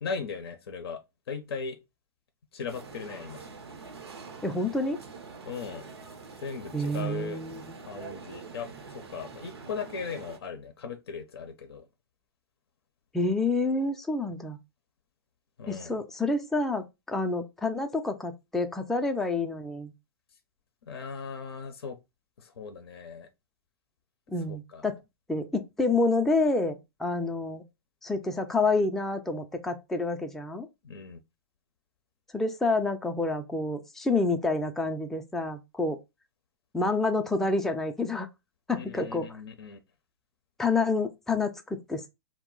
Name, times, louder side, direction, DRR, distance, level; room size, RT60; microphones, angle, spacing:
voice 1, 0.0-1.8 2.5-3.5 5.5-5.9 6.4-7.4 7.9-11.8 15.6-16.0 20.8-22.0 22.4-23.3 24.5-24.9 30.8-31.2 38.7-39.8, left 5 dB, 75° left, 0.5 m, -38 dB
sound 1, 2.7-10.4, right 5 dB, 90° right, 0.7 m, -45 dB
voice 2, 4.4-5.0 6.7-7.6 13.1-14.6 15.7-19.9 24.3-25.0 25.3-27.6 28.0-30.7 32.3-36.0 36.7-38.3 38.7-39.3 40.6-42.1, left 3 dB, 5° left, 0.4 m, -28 dB
2.3 x 2.0 x 3.7 m
hypercardioid pair, 115°, 13 cm